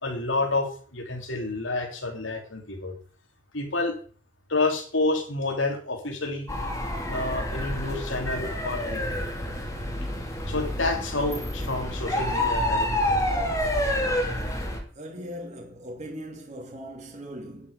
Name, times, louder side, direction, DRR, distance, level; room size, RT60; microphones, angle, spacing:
voice 1, 0.0-0.7 0.9-3.0 3.5-3.9 4.5-6.5 7.1-9.2 10.5-13.2, left 2 dB, 75° left, 3.2 m, -29 dB
sound 1, 6.5-14.8, left 1 dB, 15° left, 2.7 m, -28 dB
voice 2, 14.9-17.7, equal, 40° right, 2.7 m, -39 dB
10.0 x 8.7 x 6.8 m
head